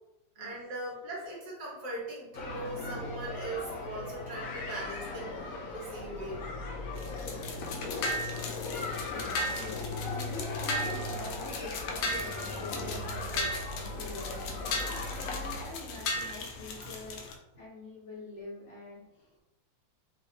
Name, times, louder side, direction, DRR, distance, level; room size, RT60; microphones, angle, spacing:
voice 1, 0.4-5.4 5.7-6.4, right 1 dB, 55° right, -4 dB, 1.9 m, -40 dB
sound 1, 2.3-15.7, left 2 dB, 60° left, 1.0 m, -38 dB
sound 2, 6.9-17.3, left 1 dB, 85° left, 1.4 m, -37 dB
voice 2, 9.0-17.3 17.6-19.4, left 2 dB, 35° left, -5 dB, 1.4 m, -45 dB
5.2 x 3.1 x 2.9 m, 0.93 s
omnidirectional pair, 2.1 m